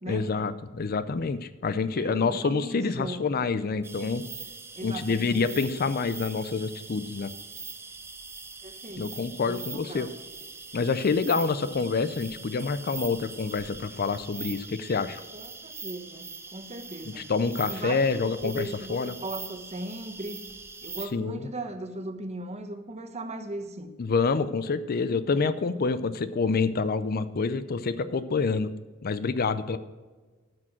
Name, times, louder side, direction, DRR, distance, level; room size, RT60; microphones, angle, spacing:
voice 1, 0.1-4.2 4.8-7.3 9.0-10.1 10.7-15.2 17.2-19.2 21.1-21.5 24.0-28.7 29.0-29.8, left 4 dB, 45° left, 14 dB, 0.5 m, -27 dB
voice 2, 1.9-3.3 4.7-5.4 8.6-9.2 9.4-10.1 15.3-17.3 17.7-20.4 20.8-23.9, right 1 dB, 30° right, 7 dB, 1.1 m, -38 dB
sound 1, 3.8-21.1, right 4 dB, 10° right, 0.7 m, -42 dB
12.0 x 6.2 x 6.1 m, 1.3 s
head